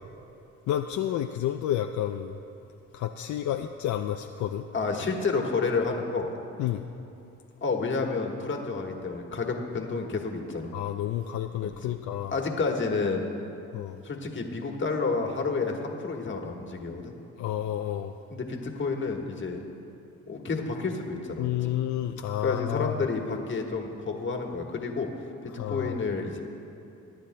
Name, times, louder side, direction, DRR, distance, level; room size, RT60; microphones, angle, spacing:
voice 1, 0.7-2.4 2.9-4.6 6.6-6.8 10.7-12.3 13.7-14.0 17.4-18.2 21.4-23.0 25.6-26.0, left 11 dB, 70° left, 5 dB, 0.5 m, -30 dB
voice 2, 4.7-6.3 7.6-10.7 11.6-11.9 12.3-13.2 14.0-17.1 18.3-19.6 20.3-21.7 22.4-25.1 25.4-26.4, left 4 dB, 40° left, 2 dB, 1.4 m, -30 dB
22.5 x 10.0 x 2.2 m, 2.8 s
cardioid pair, 90°, 30 cm